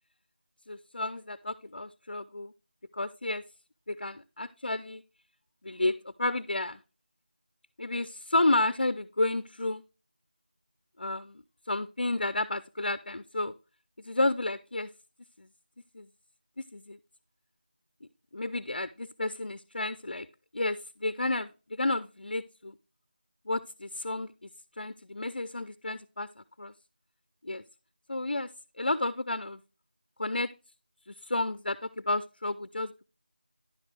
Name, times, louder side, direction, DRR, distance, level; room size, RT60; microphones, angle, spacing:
voice 1, 0.7-2.5 2.9-3.4 3.9-5.0 5.6-6.8 7.8-9.8 11.0-11.4 11.7-13.5 14.0-14.9 15.4-15.5 15.9-16.1 16.6-17.0 18.0-20.3 20.5-22.8 23.5-24.5 24.8-26.3 26.6-26.7 27.4-27.6 28.1-28.5 28.8-29.6 30.2-30.5 31.1-33.1, left 2 dB, 60° left, 14 dB, 0.4 m, -31 dB
10.5 x 5.1 x 3.3 m, 0.32 s
figure-of-eight pair, 175°, 5 cm